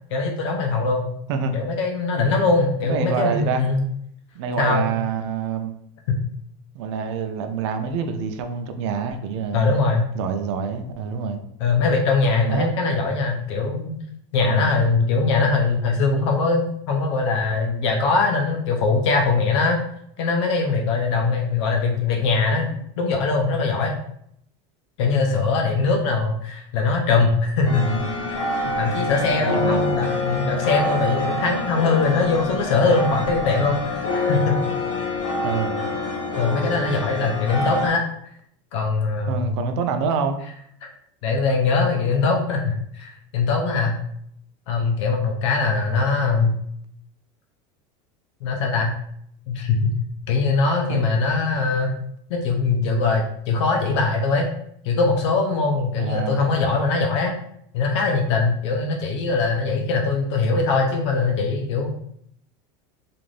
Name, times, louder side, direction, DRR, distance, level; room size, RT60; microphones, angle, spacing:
voice 1, 0.1-1.1 1.5-3.8 4.6-4.8 6.1-6.2 9.5-10.1 11.6-13.9 14.3-19.8 20.2-23.9 25.0-28.0 28.3-34.6 36.4-38.1 38.7-39.7 40.8-40.9 41.2-44.0 44.7-46.6 48.4-49.0 49.5-49.9 50.3-51.9 52.3-54.5 54.8-57.3 57.7-61.9, left 4 dB, 75° left, 2 dB, 0.6 m, -21 dB
voice 2, 2.8-3.6 4.4-5.7 6.7-9.7 10.1-11.4 12.5-12.7 14.4-14.7 27.7-28.0 29.4-29.9 35.4-35.8 39.3-40.4 50.9-51.0 56.0-56.4, right 5 dB, 75° right, 6 dB, 0.5 m, -26 dB
sound 1, 27.6-37.9, left 2 dB, 55° left, 1.1 m, -26 dB
2.5 x 2.5 x 3.2 m, 0.70 s
supercardioid pair, 145°, 15 cm